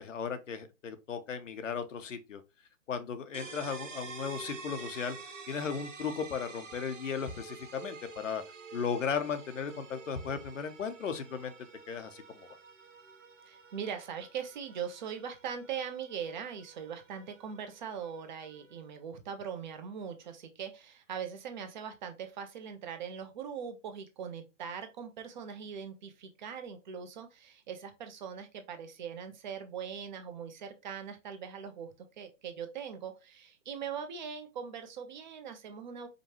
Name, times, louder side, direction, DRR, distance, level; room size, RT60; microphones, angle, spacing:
voice 1, 0.0-2.4 2.9-5.2 5.5-8.4 8.7-11.5 11.9-12.5, left 6 dB, 75° left, 0.8 m, -36 dB
sound 1, 3.3-18.9, right 4 dB, 75° right, 1.0 m, -49 dB
voice 2, 13.4-31.9 32.2-36.1, right 7 dB, 35° right, 0.7 m, -41 dB
5.1 x 2.3 x 2.9 m
hypercardioid pair, 135°, 38 cm